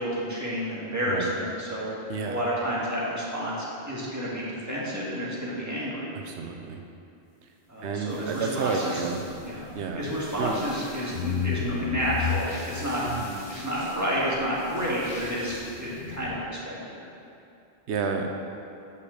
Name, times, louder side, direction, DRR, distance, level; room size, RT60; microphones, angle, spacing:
voice 1, 0.0-1.9 2.2-6.0 7.7-9.0 9.5-9.7 9.9-16.9, equal, 15° right, -7 dB, 1.8 m, -30 dB
voice 2, 2.1-2.4 6.1-6.8 7.8-9.2 9.7-10.1 10.4-10.6 13.0-13.3 17.9-18.3, right 5 dB, 90° right, 4 dB, 0.9 m, -30 dB
sound 1, 8.1-16.2, equal, 45° left, 2.0 m, -48 dB
sound 2, 9.1-10.7 11.1-16.4, left 7 dB, 85° left, 0.9 m, -35 dB
6.7 x 5.7 x 6.3 m, 2.7 s
omnidirectional pair, 1.1 m